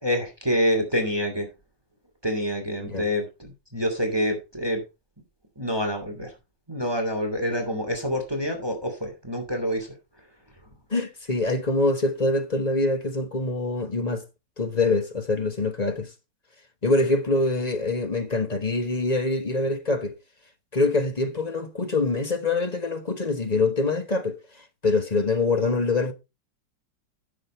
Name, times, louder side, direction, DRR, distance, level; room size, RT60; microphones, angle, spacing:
voice 1, 0.0-1.5 2.2-4.8 5.6-6.3 6.7-9.9, equal, 15° right, 2.6 m, -27 dB
voice 2, 10.9-14.2 14.6-16.1 16.8-20.1 20.7-24.4 24.8-26.1, left 2 dB, 25° left, 1.1 m, -24 dB
10.5 x 7.5 x 4.4 m
omnidirectional pair, 1.9 m